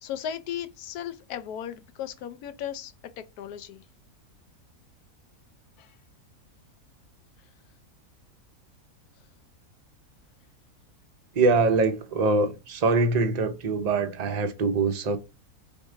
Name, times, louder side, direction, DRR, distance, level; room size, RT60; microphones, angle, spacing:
voice 1, 0.0-3.9 5.8-5.9 7.4-7.5, left 9 dB, 80° left, 1.1 m, -36 dB
voice 2, 11.3-15.2, right 3 dB, 50° right, 0.5 m, -23 dB
4.6 x 2.8 x 3.7 m
omnidirectional pair, 1.6 m